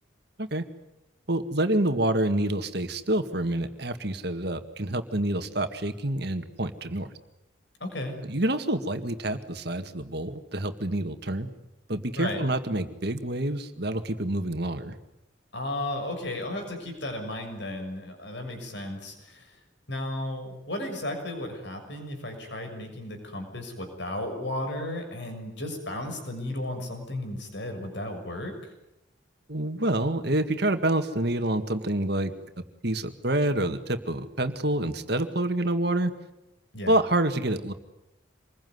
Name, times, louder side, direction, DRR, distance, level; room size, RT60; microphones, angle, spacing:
voice 1, 1.3-7.1 8.3-11.5 11.9-15.0 29.5-32.3 32.8-36.1 36.9-37.7, right 1 dB, 55° right, 7 dB, 1.9 m, -27 dB
voice 2, 7.8-8.2 12.2-12.4 15.5-19.6 19.9-28.7 36.7-36.9, left 1 dB, 65° left, 5 dB, 6.6 m, -34 dB
27.0 x 21.5 x 9.6 m, 0.89 s
head